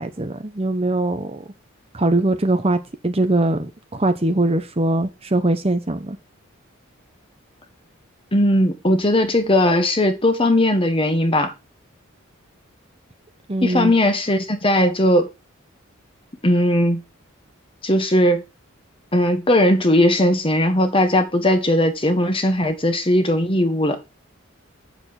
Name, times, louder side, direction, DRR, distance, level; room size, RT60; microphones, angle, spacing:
voice 1, 0.0-1.4 1.9-2.8 3.0-6.2 13.5-13.9, right 2 dB, 30° right, 0.8 m, -21 dB
voice 2, 8.3-11.5 13.6-15.3 16.4-17.0 17.8-18.4 19.1-24.0, left 1 dB, 25° left, 1.4 m, -18 dB
8.6 x 6.7 x 4.3 m
head